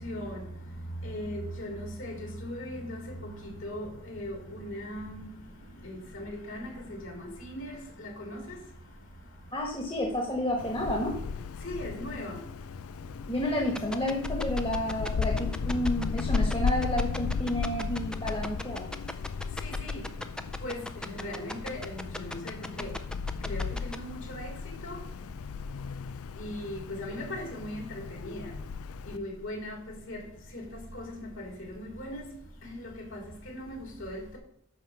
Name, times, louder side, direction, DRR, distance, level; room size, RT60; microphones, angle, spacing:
voice 1, 0.0-0.4 1.0-5.3 5.8-7.7 8.0-8.4 11.6-12.4 19.6-19.9 20.6-20.8 21.0-22.9 23.4-24.5 24.8-25.0 26.4-28.5 29.1-29.8 30.1-30.2 30.5-30.6 30.9-32.2 32.8-34.4, left 1 dB, 60° left, 3.3 m, -38 dB
voice 2, 9.5-11.1 13.3-18.9, left 1 dB, 25° left, 1.5 m, -30 dB
Wind, 10.6-29.2, left 5 dB, 80° left, 0.4 m, -35 dB
sound 1, 13.8-24.0, left 1 dB, 5° left, 0.4 m, -37 dB
10.5 x 4.6 x 7.0 m
head